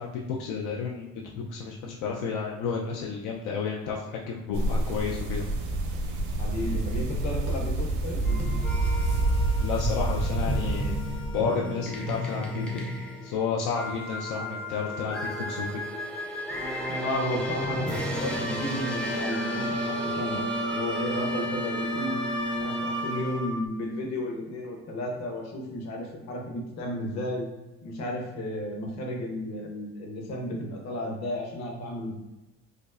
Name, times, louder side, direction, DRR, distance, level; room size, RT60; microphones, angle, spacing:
voice 1, 0.0-5.4 9.6-12.9 13.2-15.2 15.5-15.7, left 5 dB, 85° left, -1 dB, 0.5 m, -31 dB
sound 1, 4.5-11.4, right 2 dB, 75° right, 0.8 m, -28 dB
voice 2, 6.4-8.2 16.9-20.4 20.7-22.2 22.6-27.5 27.8-32.1, left 1 dB, 60° left, -1 dB, 1.0 m, -33 dB
sound 2, 8.2-23.7, equal, 5° left, 0.4 m, -32 dB
4.9 x 2.0 x 2.4 m, 1.0 s
cardioid pair, 140°, 30 cm